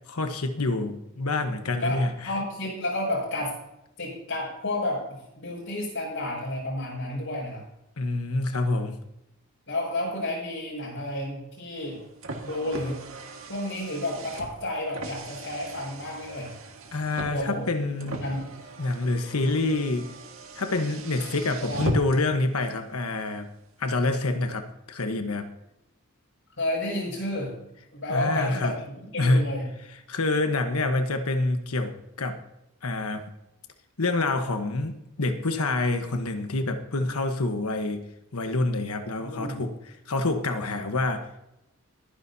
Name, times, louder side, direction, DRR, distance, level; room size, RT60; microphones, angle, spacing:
voice 1, 0.1-2.1 8.0-9.0 16.9-18.2 18.8-20.1 20.6-23.5 23.8-25.5 28.1-28.7 29.2-29.5 30.1-32.4 32.8-33.2 34.0-38.0 38.3-39.7 40.1-41.4, left 2 dB, 85° left, 7 dB, 1.2 m, -27 dB
voice 2, 1.8-3.5 4.0-5.1 5.4-7.6 9.7-12.0 12.4-13.0 13.5-16.5 17.3-17.6 18.0-18.5 21.6-21.9 26.6-27.6 27.9-28.8 29.1-29.7 39.2-39.6, left 1 dB, 65° left, -7 dB, 5.8 m, -31 dB
Car, 11.8-22.4, right 1 dB, 65° right, 1.8 m, -38 dB
22.0 x 10.0 x 2.8 m, 0.87 s
head